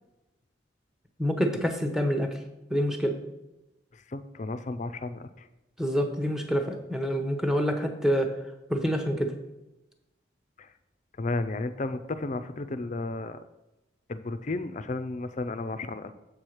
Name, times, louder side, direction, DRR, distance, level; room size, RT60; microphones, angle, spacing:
voice 1, 1.2-2.3 2.7-3.2 5.8-8.3 8.7-9.3, equal, 5° right, 5 dB, 0.8 m, -27 dB
voice 2, 3.9-5.5 10.6-10.7 11.2-13.4 14.1-16.1, left 2 dB, 40° left, 11 dB, 0.5 m, -33 dB
7.6 x 4.5 x 6.4 m, 0.98 s
head